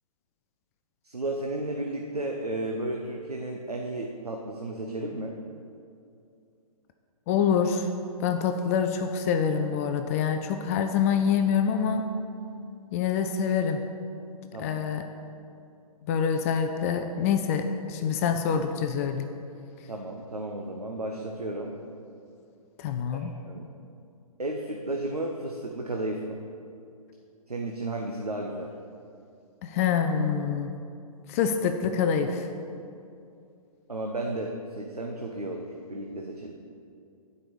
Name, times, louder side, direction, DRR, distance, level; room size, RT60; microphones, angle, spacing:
voice 1, 1.0-5.4 14.5-14.8 19.9-21.8 23.1-23.7 24.4-26.4 27.5-28.7 33.9-36.5, right 1 dB, 90° right, 1 dB, 0.9 m, -33 dB
voice 2, 7.3-7.9 8.2-12.0 12.9-13.8 14.6-15.0 16.1-19.3 22.8-23.3 29.6-30.7 31.3-32.5, left 7 dB, 25° left, 6 dB, 0.4 m, -26 dB
9.0 x 5.3 x 8.1 m, 2.5 s
figure-of-eight pair, 125°, 19 cm